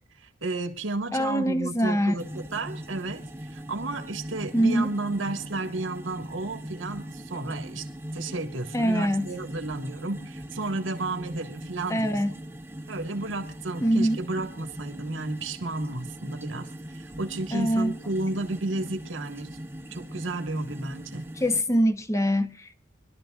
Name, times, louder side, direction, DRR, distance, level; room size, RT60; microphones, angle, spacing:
voice 1, 0.2-3.2 3.5-7.9 8.1-12.2 12.9-16.7 16.9-19.6 19.9-21.3, right 2 dB, 90° right, 1.8 m, -32 dB
voice 2, 1.1-2.2 4.5-4.9 8.7-9.3 11.9-12.3 13.8-14.2 17.5-18.0 21.4-22.8, equal, 15° left, 0.9 m, -24 dB
sound 1, 2.2-21.6, right 1 dB, 10° right, 0.8 m, -40 dB
24.5 x 12.5 x 2.4 m
head